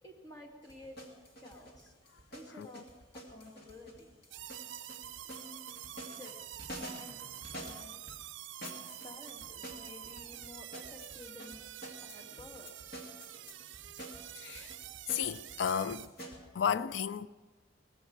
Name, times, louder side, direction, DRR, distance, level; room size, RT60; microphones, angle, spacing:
voice 1, 0.0-1.0 1.4-1.9 2.3-2.9 3.1-4.1 5.3-5.8 6.1-6.6 7.0-7.2 7.5-7.9 9.0-11.6 12.0-12.7, left 2 dB, 20° left, 2.2 m, -52 dB
sound 1, 0.6-8.2 8.6-16.4, equal, 55° left, 2.6 m, -49 dB
sound 2, 4.3-16.1, right 12 dB, 70° right, 0.5 m, -47 dB
voice 2, 14.4-14.7 15.1-16.1 16.5-17.3, left 7 dB, 75° left, 0.4 m, -33 dB
19.0 x 15.5 x 4.7 m
head